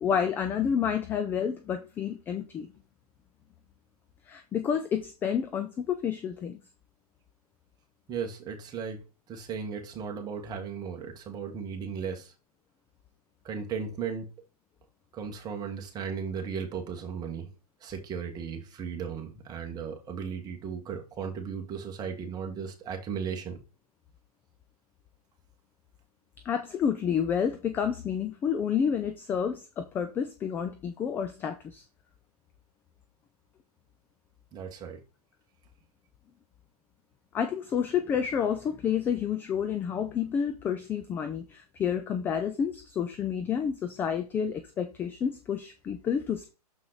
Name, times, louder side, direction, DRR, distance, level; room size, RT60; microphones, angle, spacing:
voice 1, 0.0-2.7 4.3-6.6 26.4-31.8 37.3-46.5, left 7 dB, 10° left, 0.3 m, -29 dB
voice 2, 8.1-9.0 9.3-12.3 13.4-14.3 15.1-17.5 17.8-23.6 34.5-35.0, right 6 dB, 20° right, 1.4 m, -36 dB
6.4 x 5.5 x 4.0 m
hypercardioid pair, 135°, 20 cm